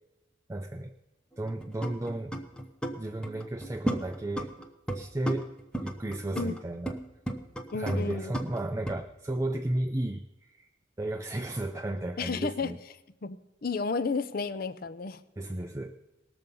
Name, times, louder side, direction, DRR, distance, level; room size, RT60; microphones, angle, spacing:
voice 1, 0.5-0.9 1.4-2.4 2.9-4.6 4.9-5.5 5.8-7.0 7.7-10.7 11.0-12.8 15.4-16.0, right 1 dB, 15° right, 4 dB, 0.4 m, -33 dB
sound 1, 1.3-3.0 3.2-5.0 5.3-7.0 7.3-9.0, right 1 dB, 5° left, 0.8 m, -34 dB
voice 2, 7.7-8.3 12.2-12.7 13.2-15.2, left 4 dB, 50° left, 13 dB, 0.6 m, -32 dB
19.0 x 6.9 x 5.3 m, 0.98 s
head